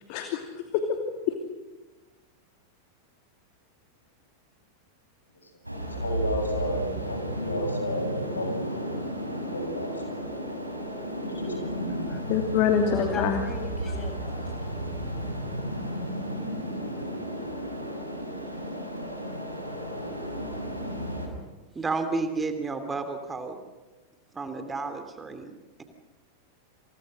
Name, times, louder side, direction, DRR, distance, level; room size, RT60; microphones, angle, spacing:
voice 1, 0.1-1.0 12.3-13.4, left 7 dB, 45° left, 5 dB, 2.7 m, -26 dB
sound 1, 5.6-21.3, equal, 85° right, 6.2 m, -33 dB
voice 2, 6.0-8.9 9.3-10.2 11.2-12.1, equal, 75° left, 4 dB, 7.6 m, -32 dB
voice 3, 12.9-14.5, left 4 dB, 20° left, 5 dB, 7.4 m, -35 dB
voice 4, 21.7-23.6 24.3-25.8, right 3 dB, 15° right, 7 dB, 2.9 m, -31 dB
29.5 x 28.0 x 6.5 m, 1.2 s
figure-of-eight pair, 90°, 0 cm